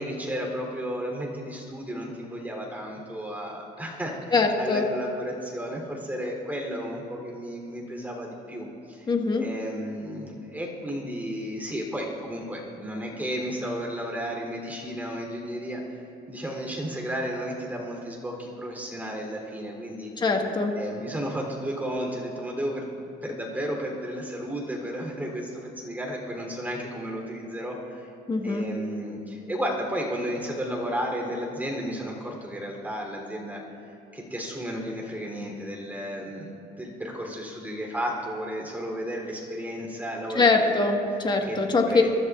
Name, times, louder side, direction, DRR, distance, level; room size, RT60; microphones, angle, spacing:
voice 1, 0.0-9.1 9.4-16.0 16.3-20.1 20.7-28.1 28.4-33.6 34.1-40.9 41.4-42.1, equal, 10° right, -1 dB, 3.2 m, -33 dB
voice 2, 4.3-4.9 9.1-9.5 20.2-20.7 28.3-28.7 40.3-42.0, left 3 dB, 25° left, 2 dB, 1.5 m, -23 dB
25.5 x 13.0 x 2.4 m, 2.7 s
cardioid pair, 110°, 17 cm